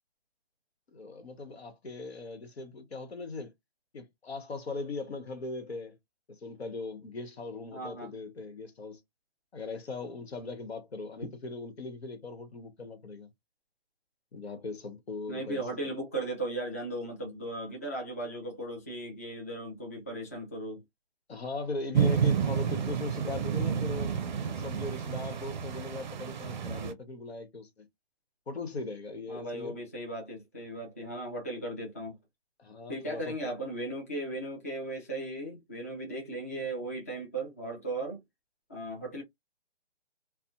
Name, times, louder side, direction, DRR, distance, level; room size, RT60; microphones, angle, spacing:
voice 1, 0.9-3.5 3.9-6.0 6.3-9.0 9.5-13.3 14.3-15.9 21.3-24.2 24.6-27.8 28.5-29.8 32.6-33.3, left 3 dB, 85° left, 1.0 m, -39 dB
voice 2, 7.7-8.1 15.3-20.8 29.3-32.2 32.9-38.2 38.7-39.2, right 1 dB, 15° left, 0.3 m, -37 dB
sound 1, 21.9-26.9, right 7 dB, 50° right, 0.5 m, -30 dB
2.4 x 2.0 x 2.8 m
hypercardioid pair, 145°, 31 cm